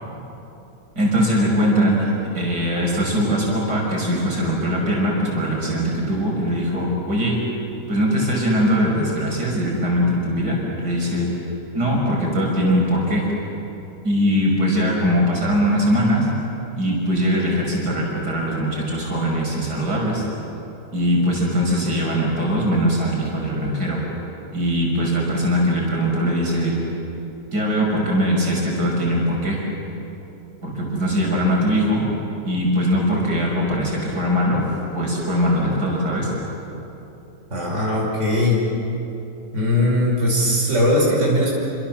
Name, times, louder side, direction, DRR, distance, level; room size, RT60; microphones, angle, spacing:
voice 1, 1.0-7.4 7.9-11.3 11.7-13.2 14.0-16.3 16.8-20.2 20.9-24.0 24.5-26.8 27.5-29.6 30.6-32.1 32.5-34.7 34.9-36.3, equal, 80° right, -3 dB, 6.6 m, -21 dB
voice 2, 37.5-38.6 39.5-41.5, left 1 dB, 45° right, -4 dB, 5.7 m, -19 dB
30.0 x 26.5 x 7.4 m, 3.0 s
omnidirectional pair, 1.7 m